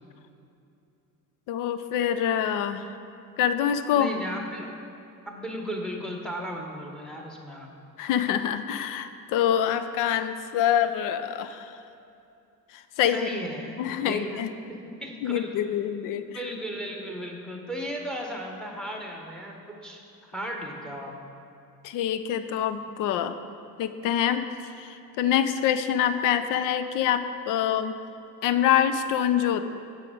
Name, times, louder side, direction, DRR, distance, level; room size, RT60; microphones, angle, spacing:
voice 1, 1.5-2.9 3.4-4.1 8.0-11.8 12.7-13.3 13.8-14.5 15.2-16.4 21.8-23.4 23.8-27.9 28.4-29.6, left 9 dB, 40° left, 11 dB, 0.5 m, -25 dB
voice 2, 3.9-4.7 5.3-7.7 13.1-13.7 14.1-14.4 14.7-15.5 16.3-21.1, equal, ahead, 1 dB, 1.2 m, -35 dB
8.3 x 6.3 x 5.1 m, 2.7 s
figure-of-eight pair, 55°, 49 cm